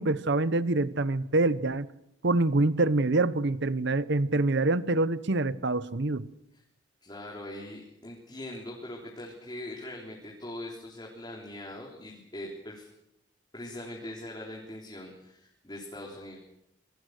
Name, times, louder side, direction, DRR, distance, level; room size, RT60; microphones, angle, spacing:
voice 1, 0.0-1.9 2.2-6.3, right 2 dB, 55° right, 0.8 m, -25 dB
voice 2, 7.0-12.9 13.5-16.4, left 1 dB, 20° left, 3.7 m, -41 dB
26.5 x 22.5 x 6.5 m
head